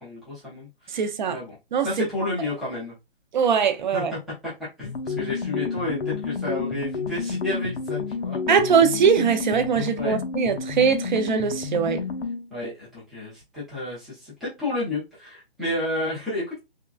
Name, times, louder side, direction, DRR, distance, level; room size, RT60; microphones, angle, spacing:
voice 1, 0.0-2.9 3.9-4.5 4.8-8.4 9.8-10.2 12.5-16.6, left 2 dB, ahead, 0.4 m, -31 dB
voice 2, 0.9-1.4 1.7-1.9 3.3-4.1 8.5-12.0, right 6 dB, 50° right, 0.6 m, -21 dB
sound 1, 4.8-12.5, left 5 dB, 80° left, 0.7 m, -30 dB
3.5 x 2.2 x 2.3 m
hypercardioid pair, 150°, 31 cm